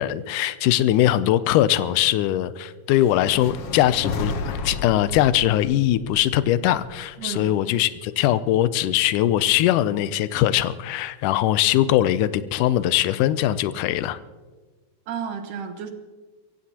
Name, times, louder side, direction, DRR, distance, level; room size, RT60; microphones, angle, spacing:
voice 1, 0.0-14.2, left 13 dB, 85° left, 14 dB, 2.2 m, -21 dB
sound 1, 2.9-7.2, left 3 dB, 65° left, 1.6 m, -32 dB
voice 2, 7.2-7.6 15.1-15.9, right 7 dB, 85° right, 6 dB, 2.9 m, -32 dB
24.0 x 16.0 x 2.9 m, 1.3 s
omnidirectional pair, 3.6 m